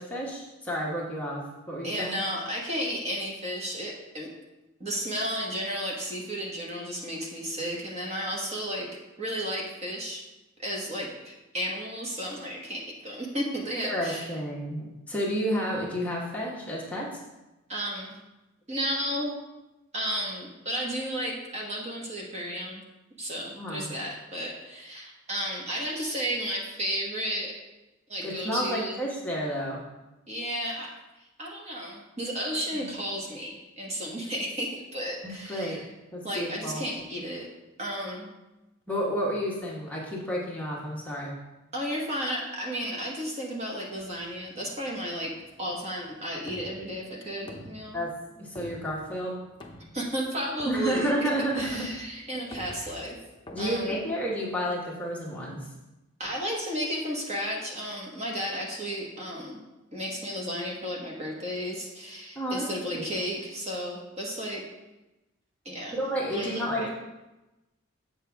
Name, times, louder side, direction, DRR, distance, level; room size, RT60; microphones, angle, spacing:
voice 1, 0.0-2.2 13.8-17.1 23.5-23.9 28.2-29.8 32.7-32.9 35.2-35.8 36.1-36.8 38.9-41.3 47.9-48.1 48.4-49.4 50.6-51.9 53.5-55.7 62.3-62.7 62.9-63.1 65.9-66.9, equal, 5° left, -5 dB, 1.2 m, -31 dB
voice 2, 1.8-4.3 4.8-8.9 9.2-10.2 10.6-14.3 17.7-18.1 18.7-19.3 19.9-22.8 23.2-27.5 28.1-29.0 30.3-30.9 31.4-35.8 36.2-37.5 37.8-38.3 41.7-45.3 45.6-48.0 49.9-51.3 51.5-53.2 53.6-53.9 56.2-59.6 59.9-64.6 65.6-66.0 66.3-66.9, equal, 30° right, -2 dB, 1.2 m, -33 dB
sound 1, 43.9-54.6, left 1 dB, 25° left, 0.7 m, -49 dB
7.6 x 6.8 x 3.5 m, 1.0 s
head